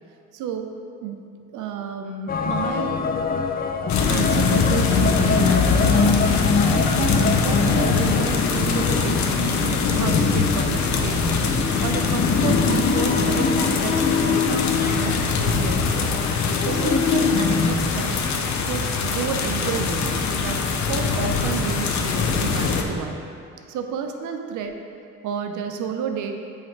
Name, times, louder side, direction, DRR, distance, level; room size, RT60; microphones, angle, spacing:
voice 1, 0.3-0.7 1.0-1.2 1.5-3.1 4.1-6.3 6.7-11.5 11.8-16.2 16.6-18.2 18.6-20.2 20.4-20.6 20.9-23.2 23.7-24.8 25.2-26.4, right 6 dB, 80° right, 5 dB, 0.6 m, -31 dB
sound 1, 2.3-17.7, left 5 dB, 30° left, 0.4 m, -25 dB
sound 2, 3.9-22.8, left 4 dB, 65° left, 0.7 m, -22 dB
7.9 x 3.4 x 4.5 m, 2.5 s
cardioid pair, 90°, 30 cm